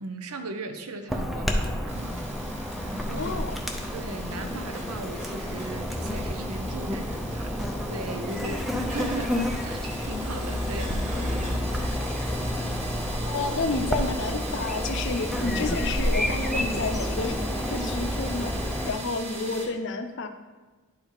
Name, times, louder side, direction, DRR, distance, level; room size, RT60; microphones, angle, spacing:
voice 1, 0.0-2.2 2.8-3.4 3.9-11.9, right 2 dB, 85° right, 6 dB, 0.8 m, -38 dB
Chirp tweet / Buzz, 1.1-18.9, equal, ahead, 0.5 m, -30 dB
sound 1, 1.9-19.7, right 2 dB, 30° right, 1.4 m, -41 dB
voice 2, 3.2-3.6 13.3-18.5 18.8-20.3, left 3 dB, 55° left, 7 dB, 0.6 m, -30 dB
10.5 x 4.4 x 3.8 m, 1.3 s
head